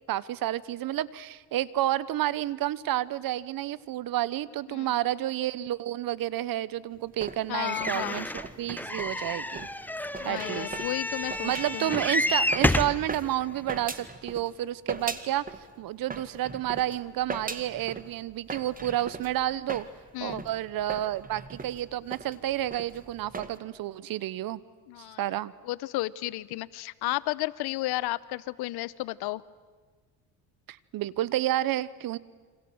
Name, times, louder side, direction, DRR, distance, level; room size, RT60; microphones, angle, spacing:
voice 1, 0.1-8.3 8.6-9.7 10.2-10.8 11.4-15.4 15.8-19.9 20.2-24.6 25.2-25.5 30.7-32.2, right 13 dB, 60° right, 20 dB, 1.1 m, -30 dB
sound 1, 6.9-14.6 14.9-15.7 16.0-23.6, right 3 dB, 20° right, 2.0 m, -40 dB
voice 2, 7.5-8.3 10.2-12.0 20.1-20.4 24.9-25.2 25.6-29.4, left 18 dB, 75° left, 19 dB, 1.0 m, -33 dB
sound 2, 7.6-13.0 13.7-13.8 14.1-14.2, left 1 dB, 5° left, 1.1 m, -29 dB
29.0 x 26.0 x 7.9 m, 1.4 s
cardioid pair, 100°, 38 cm